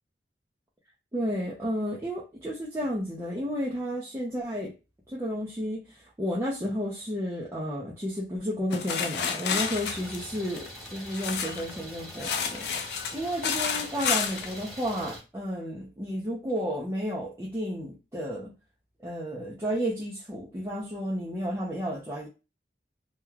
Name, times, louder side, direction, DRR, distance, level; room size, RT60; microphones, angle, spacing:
voice 1, 1.1-4.7 5.1-18.5 19.0-22.3, equal, 15° right, 0.5 m, -32 dB
sound 1, 8.7-11.7 12.1-14.5, left 6 dB, 65° left, 0.4 m, -30 dB
Idling, 9.6-15.2, equal, ahead, 1.0 m, -43 dB
3.1 x 2.2 x 2.2 m
head